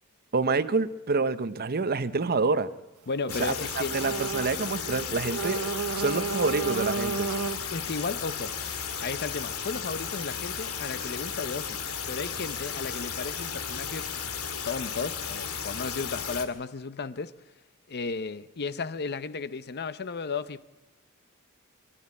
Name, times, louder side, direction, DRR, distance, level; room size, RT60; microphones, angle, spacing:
voice 1, 0.3-2.7 3.4-5.7 6.0-7.3, right 4 dB, 45° right, 0.8 m, -27 dB
voice 2, 3.1-3.9 7.7-8.6 9.0-11.8 12.1-14.3 14.6-17.3 17.9-20.6, left 4 dB, 50° left, 0.7 m, -34 dB
sound 1, 3.3-16.4, left 7 dB, 75° left, 2.1 m, -34 dB
sound 2, 3.8-4.6 4.8-7.7, right 5 dB, 85° right, 0.8 m, -32 dB
24.0 x 13.0 x 9.8 m
head